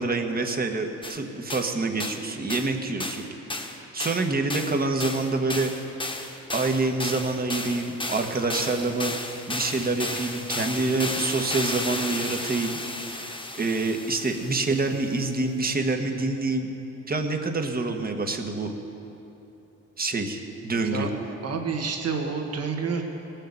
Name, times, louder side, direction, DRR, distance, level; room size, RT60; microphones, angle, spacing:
voice 1, 0.0-5.7 6.5-9.1 9.5-16.7 17.1-18.7 20.0-21.1, right 3 dB, 30° right, 4 dB, 1.5 m, -27 dB
sound 1, 1.0-1.2 1.5-1.7 2.0-2.2 2.5-2.7 3.0-3.3 3.5-15.0, left 2 dB, 15° left, 1.5 m, -33 dB
voice 2, 21.4-23.0, right 5 dB, 55° right, 2 dB, 2.0 m, -29 dB
19.0 x 6.6 x 8.1 m, 2.9 s
cardioid pair, 90°, 30 cm